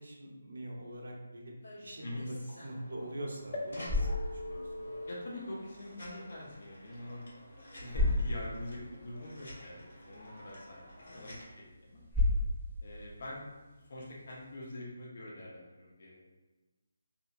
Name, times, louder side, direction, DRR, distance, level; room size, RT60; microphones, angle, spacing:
voice 1, 0.0-1.5 1.8-2.3 2.6-4.9, right 1 dB, 80° right, 0 dB, 0.7 m, -43 dB
sound 1, 1.6-11.4, left 1 dB, 80° left, 1.3 m, -48 dB
sound 2, 3.5-7.2 7.8-7.9 8.1-8.2, left 2 dB, 30° left, 0.4 m, -47 dB
sound 3, 3.5-14.6, left 2 dB, 5° left, 1.0 m, -37 dB
voice 2, 5.1-7.3 7.8-12.0 12.8-13.4 13.7-16.2, left 1 dB, 50° left, -5 dB, 0.8 m, -44 dB
2.8 x 2.7 x 2.5 m, 1.2 s
hypercardioid pair, 165°, 0 cm